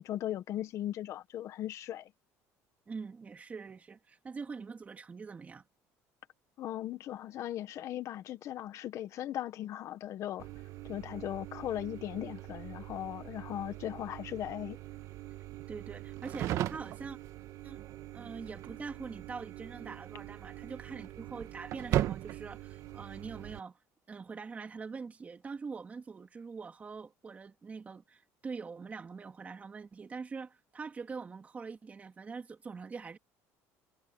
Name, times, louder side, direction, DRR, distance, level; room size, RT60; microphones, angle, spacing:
voice 1, 0.0-2.1 6.6-10.5 10.8-14.8, left 12 dB, 50° left, 1.7 m, -38 dB
voice 2, 2.9-5.6 15.7-17.2 17.6-17.8 18.1-23.8 24.1-33.2, right 5 dB, 20° right, 2.6 m, -44 dB
sound 1, 10.4-23.6, right 13 dB, 55° right, 1.8 m, -40 dB
cardioid pair, 145°, 7 cm